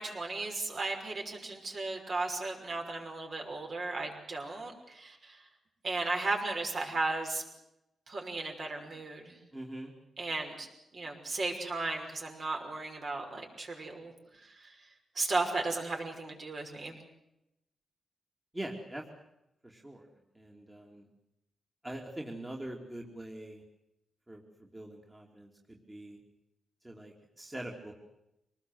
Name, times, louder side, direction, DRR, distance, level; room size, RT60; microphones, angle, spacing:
voice 1, 0.0-5.4 5.8-7.4 8.1-9.4 10.2-10.7 10.9-14.1 14.4-14.8 15.2-17.0, right 3 dB, 50° right, 2 dB, 5.8 m, -35 dB
voice 2, 9.5-9.9 18.5-19.0 19.6-20.1 20.3-21.1 21.8-23.6 24.3-26.2 26.8-27.9, right 1 dB, 15° right, 0 dB, 2.9 m, -43 dB
25.0 x 19.5 x 7.9 m, 0.86 s
cardioid pair, 110°, 0 cm